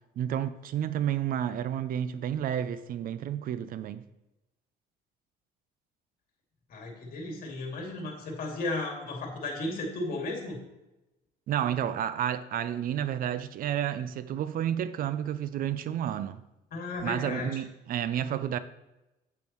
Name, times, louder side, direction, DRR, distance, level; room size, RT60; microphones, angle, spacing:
voice 1, 0.2-4.0 11.5-16.4 17.0-18.6, right 10 dB, 55° right, 0.5 m, -31 dB
voice 2, 6.7-10.6 16.7-17.6, left 2 dB, 60° left, 2.5 m, -34 dB
8.4 x 8.4 x 3.0 m
cardioid pair, 110°, 17 cm